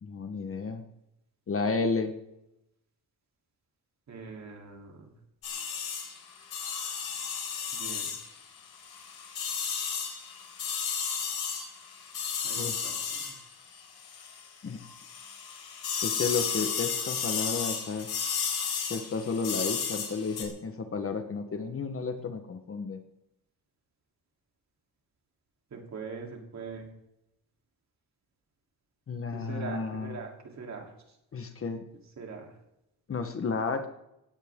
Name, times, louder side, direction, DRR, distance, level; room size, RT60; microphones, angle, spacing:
voice 1, 0.0-0.8 1.5-2.1 12.5-12.8 14.6-14.8 16.0-18.1 18.9-23.0 29.1-30.2 31.3-31.8 33.1-33.9, left 4 dB, 35° left, 7 dB, 1.3 m, -32 dB
voice 2, 4.1-5.0 7.7-8.1 12.4-12.9 13.3-13.4 25.7-26.9 29.3-30.3 30.6-30.9 32.2-32.5, right 4 dB, 45° right, 1 dB, 3.5 m, -41 dB
sound 1, 5.4-14.5 14.8-20.4, left 6 dB, 70° left, 4.4 m, -33 dB
18.0 x 16.5 x 3.7 m, 0.85 s
wide cardioid pair, 175°, 39 cm